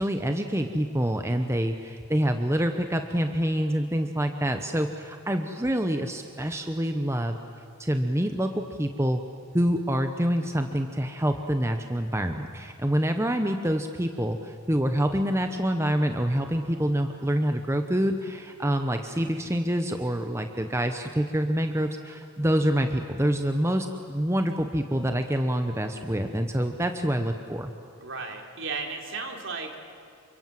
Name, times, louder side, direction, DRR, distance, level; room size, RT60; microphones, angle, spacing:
voice 1, 0.0-7.4 7.8-9.2 9.5-27.7, equal, 10° right, 6 dB, 1.0 m, -26 dB
voice 2, 28.0-29.8, right 4 dB, 60° right, 3 dB, 3.6 m, -34 dB
29.0 x 25.0 x 7.8 m, 2.6 s
head